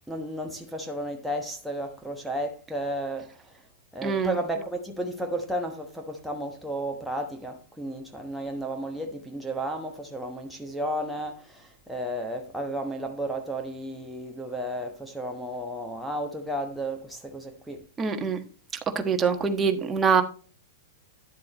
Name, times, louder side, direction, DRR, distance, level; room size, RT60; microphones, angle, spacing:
voice 1, 0.1-3.3 3.9-17.8, right 1 dB, ahead, 1.1 m, -33 dB
voice 2, 4.0-4.3 18.0-18.4 18.9-20.2, right 6 dB, 20° right, 1.4 m, -24 dB
11.0 x 7.4 x 3.0 m
hypercardioid pair, 105°, 0 cm